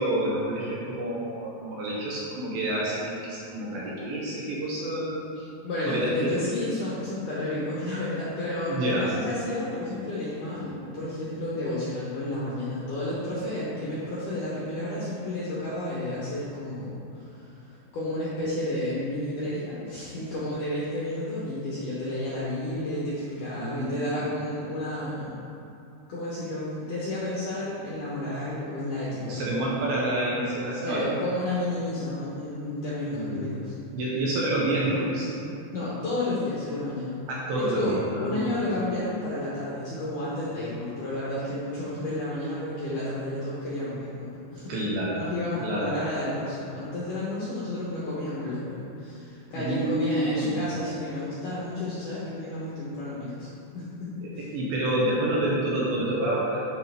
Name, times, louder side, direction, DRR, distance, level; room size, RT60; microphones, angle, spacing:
voice 1, 0.0-5.2 5.9-6.4 8.7-9.1 23.6-24.1 29.2-31.1 33.1-33.5 33.9-35.3 37.3-38.6 44.7-45.2 45.6-46.0 49.6-50.6 54.2-56.7, right 1 dB, 70° right, -5 dB, 2.5 m, -28 dB
voice 2, 5.4-25.3 26.1-29.4 30.8-33.7 35.7-37.2 37.5-44.7 45.1-54.4, left 1 dB, 70° left, -8 dB, 2.0 m, -31 dB
10.5 x 5.1 x 3.4 m, 2.7 s
omnidirectional pair, 5.1 m